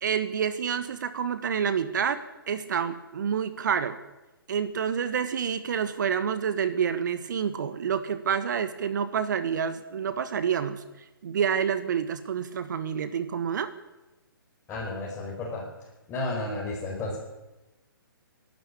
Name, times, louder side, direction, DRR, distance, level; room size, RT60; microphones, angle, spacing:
voice 1, 0.0-4.0 4.5-10.8 11.2-13.7, right 7 dB, 55° right, 11 dB, 1.6 m, -28 dB
voice 2, 14.7-15.7 16.1-17.2, left 2 dB, 15° left, -4 dB, 5.6 m, -32 dB
25.0 x 12.0 x 8.5 m, 1.0 s
figure-of-eight pair, 135°, 12 cm